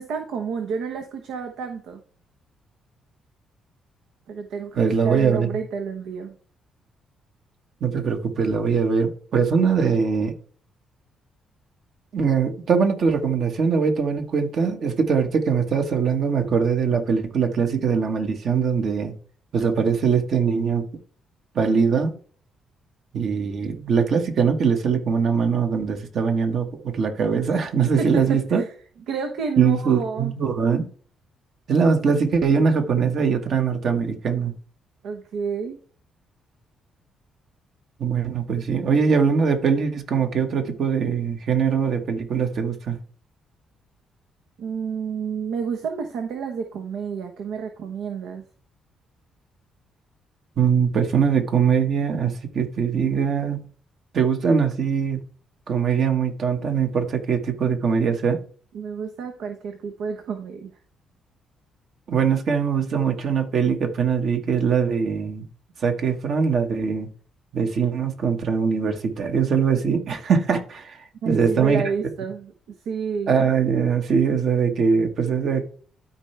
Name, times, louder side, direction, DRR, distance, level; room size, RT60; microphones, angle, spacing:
voice 1, 0.0-2.0 4.3-6.3 28.0-28.7 29.1-30.3 35.0-35.8 44.6-48.4 58.7-60.7 71.2-73.4, right 6 dB, 85° right, 1.1 m, -30 dB
voice 2, 4.8-5.5 7.8-10.3 12.1-19.1 19.5-20.8 21.6-22.1 23.1-28.6 29.6-30.9 31.7-34.5 38.0-43.0 50.6-53.7 54.1-55.2 55.7-58.4 62.1-65.4 65.8-67.1 67.5-71.8 73.3-75.6, right 6 dB, 60° right, 1.6 m, -22 dB
12.5 x 4.6 x 3.4 m
cardioid pair, 90°, 0 cm